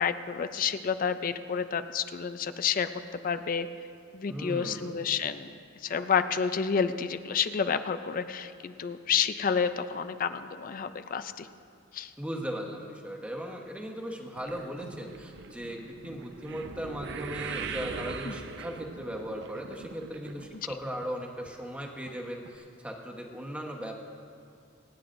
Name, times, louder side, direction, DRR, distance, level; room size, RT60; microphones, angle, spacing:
voice 1, 0.0-2.9 3.2-3.7 4.1-5.5 5.8-11.5 11.9-12.1 18.3-18.4, left 6 dB, 40° left, 11 dB, 0.4 m, -29 dB
voice 2, 4.3-5.0 12.2-24.0, equal, 5° right, 0 dB, 1.1 m, -38 dB
sound 1, 14.4-20.8 21.0-21.5 22.1-22.2 22.5-22.6, right 5 dB, 55° right, 0.6 m, -40 dB
27.5 x 9.4 x 2.6 m, 2.3 s
head